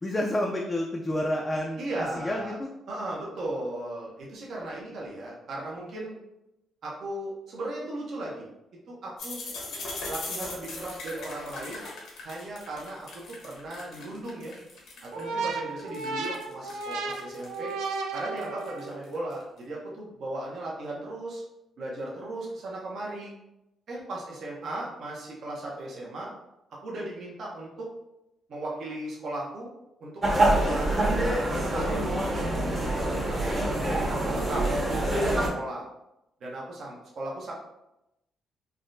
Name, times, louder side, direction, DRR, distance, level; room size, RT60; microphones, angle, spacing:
voice 1, 0.0-2.7, left 1 dB, 20° left, 0 dB, 0.3 m, -29 dB
voice 2, 1.8-2.6 2.9-6.2 6.8-8.5 8.9-9.4 10.1-11.8 12.2-14.5 15.0-17.7 18.1-21.4 21.8-23.3 23.9-26.3 26.8-27.9 28.5-29.7 30.0-31.2 31.5-34.7 35.1-35.8 36.4-37.5, right 1 dB, 60° right, -4 dB, 0.7 m, -37 dB
sound 1, 9.2-15.2 15.6-19.4, left 2 dB, 80° left, 0.9 m, -39 dB
sound 2, 15.1-19.0, right 4 dB, 85° right, 0.3 m, -34 dB
sound 3, 30.2-35.5, right 1 dB, 35° right, 0.9 m, -25 dB
3.5 x 2.1 x 2.5 m, 0.90 s
cardioid pair, 90°, 0 cm